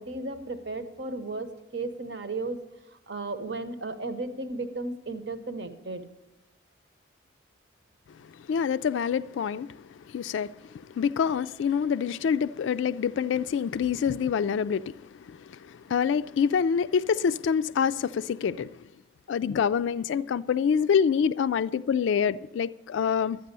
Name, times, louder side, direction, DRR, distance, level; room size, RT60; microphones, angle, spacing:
voice 1, 0.0-1.5 1.7-2.6 3.1-6.1, right 2 dB, 65° right, 1.0 m, -34 dB
voice 2, 8.5-10.6 10.9-18.8 19.3-23.4, left 7 dB, 75° left, 0.3 m, -26 dB
12.0 x 9.2 x 6.7 m
head